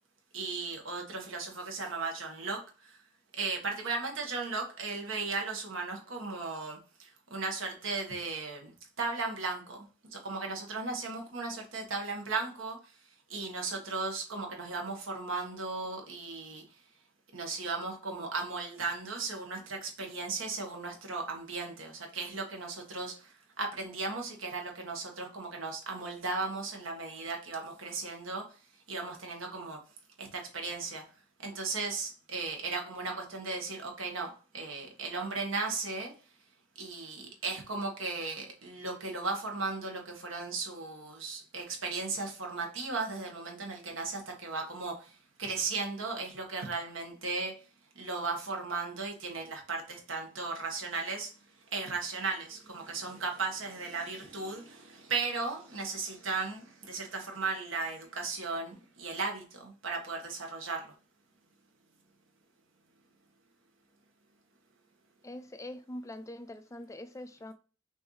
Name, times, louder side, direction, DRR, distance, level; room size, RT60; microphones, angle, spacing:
voice 1, 0.3-3.0 3.3-12.9 13.3-16.6 17.3-28.5 28.9-29.8 30.2-31.0 31.4-36.1 36.8-47.5 47.9-51.3 51.7-60.9, right 3 dB, 75° right, 1.4 m, -36 dB
voice 2, 65.2-67.5, left 1 dB, 15° left, 0.4 m, -43 dB
6.1 x 2.7 x 3.2 m
head